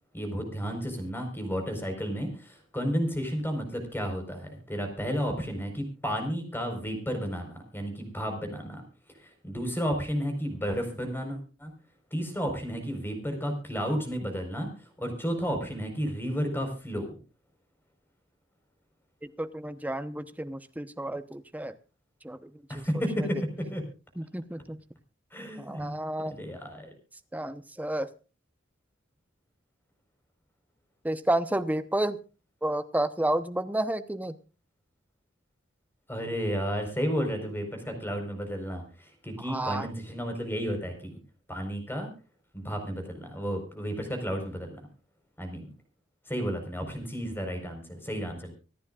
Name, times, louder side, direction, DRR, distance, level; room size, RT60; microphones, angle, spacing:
voice 1, 0.1-8.8 9.2-11.7 12.1-14.7 15.0-17.1 22.7-23.4 23.7-23.8 25.3-26.0 26.3-26.9 36.1-41.1 41.5-42.1 42.5-44.8 45.4-45.7 46.3-48.5, equal, 10° left, 5 dB, 4.5 m, -32 dB
voice 2, 19.2-21.7 22.2-22.8 23.2-23.3 24.2-24.8 25.6-26.4 27.3-28.1 31.0-32.2 32.6-34.4 39.4-39.9, right 1 dB, 10° right, 10 dB, 0.9 m, -31 dB
26.0 x 10.0 x 2.4 m, 0.34 s
head